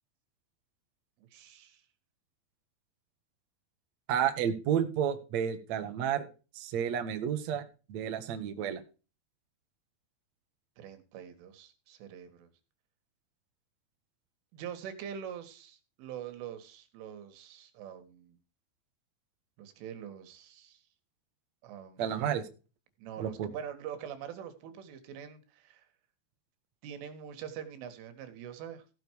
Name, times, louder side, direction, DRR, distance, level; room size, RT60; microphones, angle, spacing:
voice 1, 1.3-1.8 10.8-12.5 14.5-18.4 19.6-20.8 21.6-22.2 23.0-25.8 26.8-28.8, right 9 dB, 85° right, 9 dB, 4.3 m, -44 dB
voice 2, 4.1-6.3 6.5-7.6 7.9-8.8 22.0-22.5 23.2-23.5, right 9 dB, 60° right, 6 dB, 1.8 m, -31 dB
16.0 x 7.1 x 4.7 m, 0.34 s
omnidirectional pair, 5.5 m